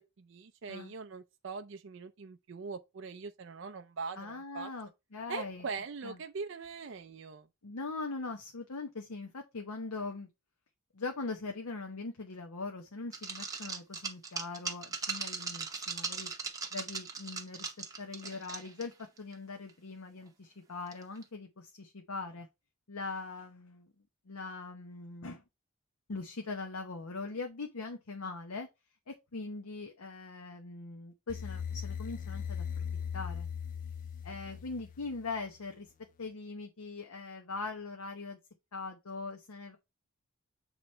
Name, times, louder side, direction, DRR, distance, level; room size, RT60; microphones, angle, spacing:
voice 1, 0.2-4.7 5.3-7.5, right 4 dB, 55° right, 0.4 m, -42 dB
voice 2, 4.2-5.7 6.0-6.2 7.6-10.3 10.9-16.3 16.7-17.7 18.0-18.9 19.2-22.5 22.9-23.9 24.3-25.4 26.1-28.7 29.1-32.8 33.1-33.5 34.2-35.9 36.2-38.4 38.7-39.8, left 3 dB, 85° left, 0.9 m, -41 dB
sound 1, 13.1-18.9 19.2-19.3 19.7-19.8 20.9-21.2, right 5 dB, 15° right, 0.8 m, -39 dB
sound 2, 31.3-35.4, left 7 dB, 35° left, 0.3 m, -39 dB
8.0 x 2.9 x 4.3 m
head